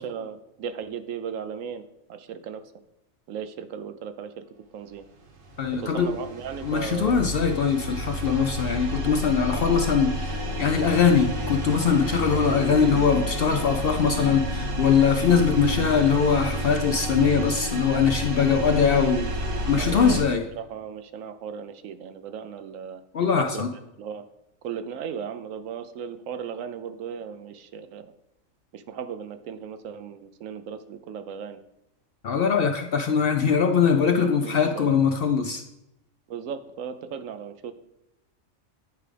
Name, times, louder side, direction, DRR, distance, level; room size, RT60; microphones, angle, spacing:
voice 1, 0.0-1.8 2.1-2.6 3.3-4.4 4.7-5.0 5.8-7.3 19.8-23.6 24.0-24.2 24.6-28.1 28.7-31.6 33.6-33.7 34.2-34.9 36.3-37.7, right 7 dB, 75° right, 10 dB, 1.0 m, -36 dB
sound 1, 5.3-20.2, equal, 45° right, 1.0 m, -30 dB
voice 2, 5.6-6.1 6.6-19.3 19.7-20.5 23.1-23.7 32.2-35.6, left 6 dB, 60° left, 5 dB, 0.6 m, -22 dB
9.6 x 4.9 x 3.3 m, 0.88 s
omnidirectional pair, 1.4 m